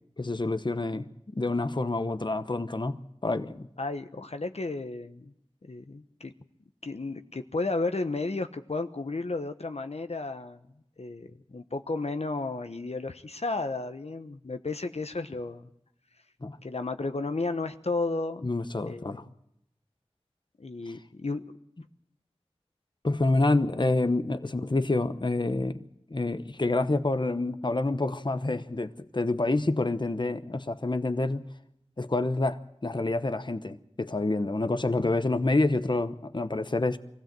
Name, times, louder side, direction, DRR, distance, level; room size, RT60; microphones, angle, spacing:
voice 1, 0.2-3.7 16.4-16.6 18.4-19.2 20.9-21.0 23.0-31.4 32.0-37.0, left 2 dB, 45° left, 0.9 m, -28 dB
voice 2, 3.8-5.3 5.6-6.3 6.8-10.6 11.0-15.7 16.6-18.5 18.9-19.2 20.6-21.4, left 3 dB, 70° left, 1.0 m, -33 dB
24.0 x 16.0 x 7.5 m
wide cardioid pair, 45°, 11 cm